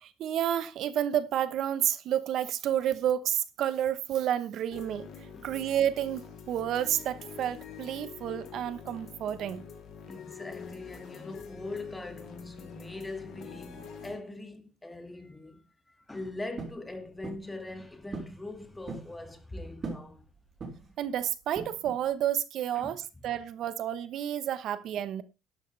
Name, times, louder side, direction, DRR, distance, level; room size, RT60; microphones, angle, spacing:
voice 1, 0.0-5.1 5.4-9.6 21.0-25.2, right 10 dB, 60° right, 1.0 m, -30 dB
sound 1, 4.7-14.2, left 6 dB, 50° left, 3.2 m, -46 dB
voice 2, 10.1-20.3 22.7-23.0, left 2 dB, 10° left, 2.2 m, -42 dB
sound 2, 16.6-16.8 17.2-17.5 18.1-18.4 18.7-19.1 19.8-20.1 20.6-21.0 21.6-22.0, right 4 dB, 30° right, 3.8 m, -39 dB
12.0 x 12.0 x 3.4 m
cardioid pair, 130°, 0 cm